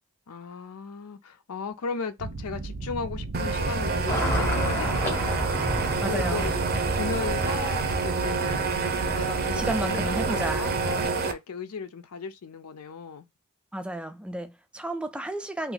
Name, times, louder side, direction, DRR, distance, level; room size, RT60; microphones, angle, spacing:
voice 1, 0.3-5.2 6.1-6.7 7.0-8.8 9.0-13.3, left 5 dB, 80° left, 0.5 m, -36 dB
sound 1, 2.2-11.1, right 3 dB, 75° right, 0.8 m, -36 dB
sound 2, 3.3-11.3, right 4 dB, 45° right, 0.6 m, -28 dB
Car passing by / Traffic noise roadway noise, 4.1-8.7, equal, 10° left, 0.8 m, -31 dB
voice 2, 6.0-6.4 9.5-10.7 13.7-15.7, right 1 dB, 5° right, 0.3 m, -32 dB
2.9 x 2.5 x 3.8 m
head